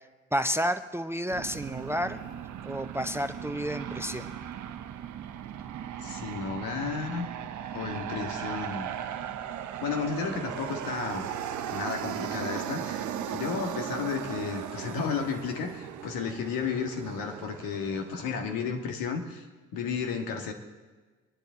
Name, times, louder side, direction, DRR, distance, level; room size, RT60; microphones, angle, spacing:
voice 1, 0.3-2.2 2.6-4.3, equal, 5° right, 10 dB, 0.6 m, -30 dB
Aircraft, 1.3-18.7, right 9 dB, 50° right, 0.9 m, -37 dB
voice 2, 6.0-7.3 7.7-8.9 9.8-11.3 11.7-13.1 13.3-19.4 19.7-20.5, left 5 dB, 65° left, 4 dB, 1.7 m, -33 dB
25.0 x 10.0 x 3.9 m, 1.3 s
hypercardioid pair, 50°, 37 cm